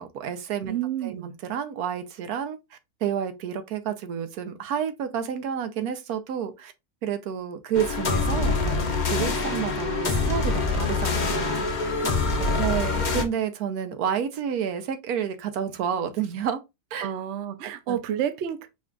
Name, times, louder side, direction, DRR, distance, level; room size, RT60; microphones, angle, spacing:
voice 1, 0.0-0.8 1.0-6.7 7.0-11.9 12.6-16.6 16.9-17.1 17.6-18.0, right 8 dB, 80° right, 1.2 m, -30 dB
voice 2, 0.7-1.3 12.0-12.8 17.0-18.7, right 10 dB, 60° right, 0.8 m, -31 dB
sound 1, 7.7-13.2, left 3 dB, 40° left, 0.7 m, -25 dB
5.0 x 2.3 x 3.6 m
omnidirectional pair, 1.6 m